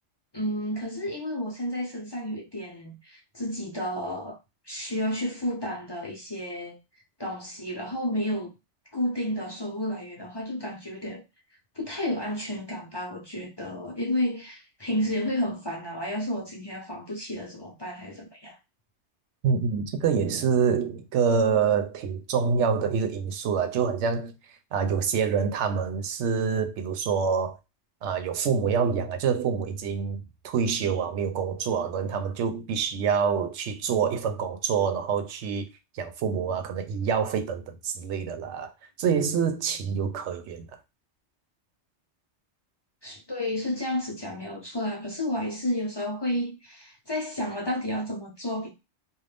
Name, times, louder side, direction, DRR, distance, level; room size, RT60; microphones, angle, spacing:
voice 1, 0.3-4.4 4.6-6.8 7.2-8.5 8.9-11.2 11.7-18.6 43.0-48.7, left 1 dB, 25° left, 0.7 m, -31 dB
voice 2, 19.4-24.3 24.7-27.6 28.0-35.7 35.9-38.7 39.0-40.7, right 6 dB, 90° right, 0.9 m, -26 dB
2.5 x 2.3 x 3.3 m
omnidirectional pair, 1.2 m